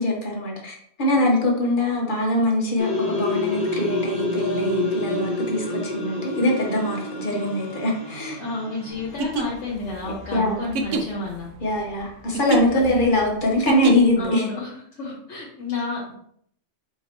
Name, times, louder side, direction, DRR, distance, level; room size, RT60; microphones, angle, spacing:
voice 1, 0.0-8.4 10.0-10.7 11.6-14.5, left 1 dB, 45° left, -1 dB, 1.0 m, -23 dB
sound 1, 2.8-9.9, left 2 dB, 25° right, 0.9 m, -28 dB
voice 2, 8.4-11.5 12.7-13.1 14.2-16.1, left 3 dB, 70° left, -4 dB, 1.1 m, -31 dB
sound 2, 9.0-14.3, right 3 dB, 80° right, 0.9 m, -28 dB
4.5 x 2.9 x 2.9 m, 0.65 s
omnidirectional pair, 1.3 m